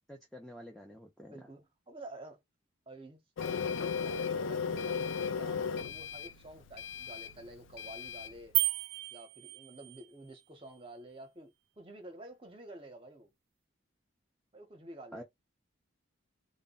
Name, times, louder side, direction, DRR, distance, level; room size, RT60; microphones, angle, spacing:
voice 1, 0.1-1.4 15.1-15.2, equal, ahead, 0.3 m, -48 dB
voice 2, 1.3-2.4 2.9-8.5 9.1-13.3 14.5-15.2, right 1 dB, 25° right, 0.7 m, -50 dB
Printer, 3.4-8.4, left 6 dB, 75° left, 0.3 m, -36 dB
sound 1, 8.5-10.1, right 17 dB, 85° right, 0.4 m, -32 dB
2.1 x 2.0 x 3.7 m
head